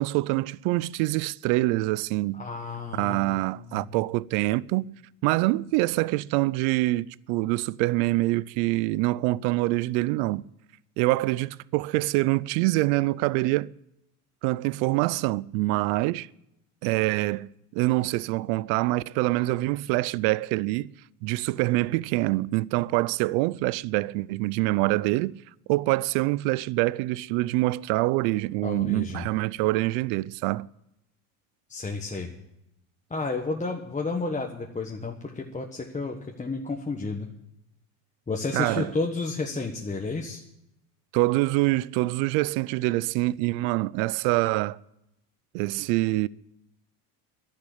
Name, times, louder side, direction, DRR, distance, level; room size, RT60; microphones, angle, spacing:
voice 1, 0.0-2.5 2.9-4.9 5.2-10.5 11.0-13.7 14.4-16.3 16.8-20.9 21.2-25.4 25.7-30.7 38.5-38.9 41.1-44.8 45.5-46.3, right 20 dB, 70° right, 0.6 m, -25 dB
voice 2, 2.3-3.9 28.6-29.2 31.7-32.3 33.1-37.3 38.3-40.4, left 3 dB, 15° left, 1.4 m, -31 dB
11.5 x 10.5 x 8.4 m
supercardioid pair, 110°, 46 cm